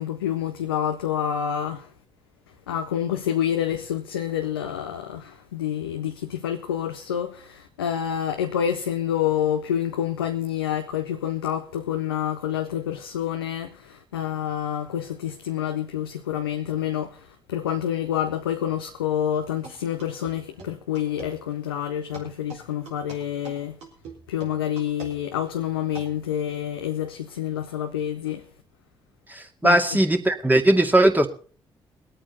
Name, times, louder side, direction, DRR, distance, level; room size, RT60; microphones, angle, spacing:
voice 1, 0.0-1.9 2.7-17.2 17.5-23.8 24.3-28.4 29.6-29.8, left 10 dB, 90° left, 0.7 m, -28 dB
sound 1, 19.6-21.4 22.1-26.2, right 4 dB, 70° right, 3.7 m, -43 dB
voice 2, 29.3-31.3, right 1 dB, 15° right, 2.4 m, -19 dB
22.0 x 8.9 x 4.1 m
hypercardioid pair, 40°, 12 cm